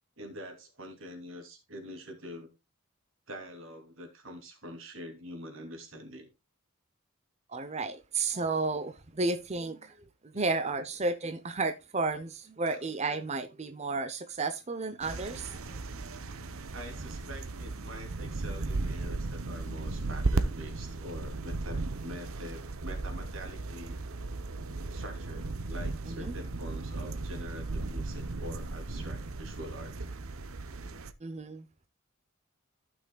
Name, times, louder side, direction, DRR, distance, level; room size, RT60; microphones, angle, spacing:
voice 1, 0.2-2.5 3.3-6.3 10.3-10.5 12.7-12.8 16.7-24.0 24.9-29.9, equal, 65° right, 2.8 m, -45 dB
voice 2, 7.5-9.9 10.3-15.6 26.1-26.3 31.2-31.9, right 3 dB, 30° right, 0.7 m, -32 dB
sound 1, 15.0-31.1, right 2 dB, 80° right, 0.9 m, -36 dB
15.5 x 6.1 x 2.3 m
head